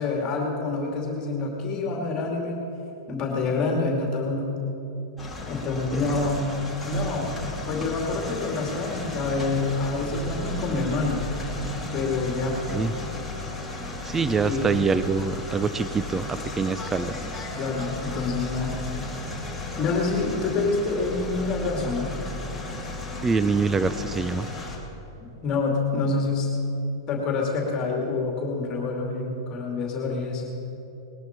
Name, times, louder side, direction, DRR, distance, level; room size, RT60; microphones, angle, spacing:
voice 1, 0.0-2.6 3.1-4.5 5.5-7.3 7.7-11.3 11.9-12.6 14.4-14.8 17.5-18.8 19.8-22.1 25.4-26.5 27.1-30.4, left 3 dB, 30° left, 0 dB, 2.5 m, -27 dB
sound 1, 5.2-24.8, left 2 dB, 5° left, 2.4 m, -34 dB
voice 2, 14.0-17.2 23.2-24.5, right 4 dB, 15° right, 13 dB, 0.4 m, -25 dB
20.0 x 11.5 x 4.5 m, 3.0 s
hypercardioid pair, 130°, 2 cm